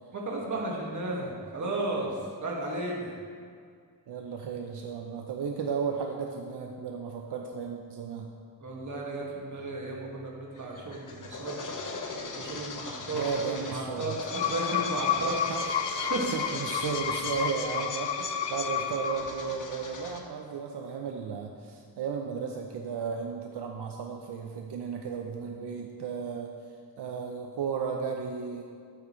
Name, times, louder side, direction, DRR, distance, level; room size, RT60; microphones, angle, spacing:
voice 1, 0.1-3.1 8.6-11.7 12.4-15.3 15.9-16.3 16.6-16.7, right 2 dB, 45° right, -3 dB, 2.0 m, -34 dB
voice 2, 4.1-8.3 13.1-14.2 15.2-15.6 16.3-26.5 27.0-28.6, right 6 dB, 80° right, 2 dB, 0.8 m, -34 dB
sound 1, 10.6-20.2, left 3 dB, 50° left, 1.1 m, -40 dB
sound 2, 14.1-19.5, left 7 dB, 85° left, 0.8 m, -31 dB
12.0 x 9.0 x 3.2 m, 2.1 s
wide cardioid pair, 130°, 41 cm